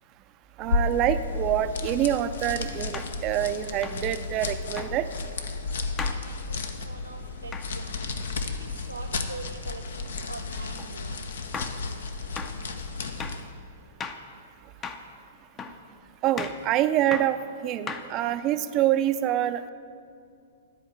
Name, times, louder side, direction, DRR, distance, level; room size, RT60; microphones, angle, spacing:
sound 1, 0.6-13.5, left 3 dB, 65° left, 0.7 m, -33 dB
voice 1, 0.6-5.1 16.2-19.7, right 12 dB, 35° right, 11 dB, 0.4 m, -26 dB
sound 2, 1.9-2.0 2.9-3.2 3.8-4.1 4.8-5.0 6.0-6.2 7.5-7.7 10.8-10.9 11.5-11.8 12.4-12.6 13.2-13.4 14.0-14.3 14.8-15.1 15.6-15.8 16.4-16.6 17.1-17.4 17.9-18.4, left 5 dB, 20° left, 0.6 m, -36 dB
voice 2, 5.8-11.4 11.9-12.1 12.4-12.8, right 3 dB, 90° right, 3 dB, 0.4 m, -45 dB
10.5 x 4.5 x 7.9 m, 2.4 s
figure-of-eight pair, 110°, 0 cm